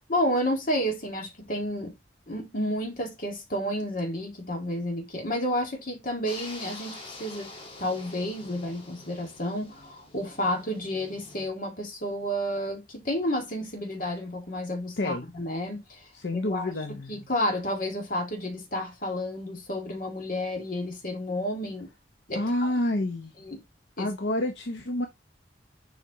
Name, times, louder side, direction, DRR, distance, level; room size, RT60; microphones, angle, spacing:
voice 1, 0.0-1.9 2.3-7.5 7.8-16.0 16.3-21.9 22.3-22.4 23.4-23.6 24.0-24.1, equal, 50° left, 2.0 m, -31 dB
sound 1, 6.3-11.5, left 2 dB, 30° left, 1.7 m, -46 dB
voice 2, 16.2-17.1 22.3-23.3 24.0-25.1, left 1 dB, 80° left, 0.8 m, -28 dB
7.3 x 4.8 x 3.0 m
head